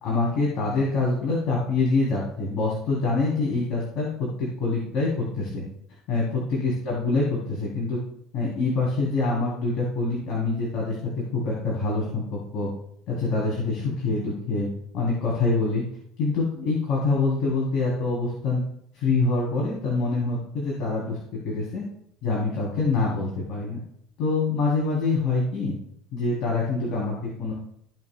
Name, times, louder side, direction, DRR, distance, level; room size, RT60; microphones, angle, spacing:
voice 1, 0.0-5.6 6.1-8.0 8.3-12.7 13.1-14.7 14.9-15.8 16.2-18.6 18.9-21.8 22.2-23.8 24.2-25.8 26.1-27.5, left 3 dB, 60° left, -4 dB, 3.2 m, -25 dB
15.5 x 5.9 x 2.3 m, 0.70 s
supercardioid pair, 85°, 0 cm